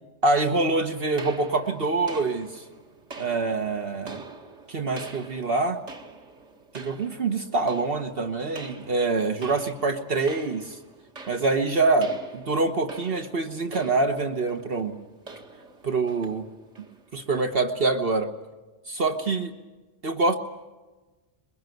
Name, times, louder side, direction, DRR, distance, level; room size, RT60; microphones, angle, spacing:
voice 1, 0.2-2.6 3.2-4.2 4.7-5.8 6.7-10.8 11.3-14.9 15.8-16.4 17.1-18.3 18.9-19.5 20.0-20.4, right 3 dB, 55° right, 6 dB, 1.3 m, -25 dB
sound 1, 1.2-17.5, right 3 dB, 80° right, 2.3 m, -45 dB
22.5 x 22.0 x 9.2 m, 1.2 s
omnidirectional pair, 1.2 m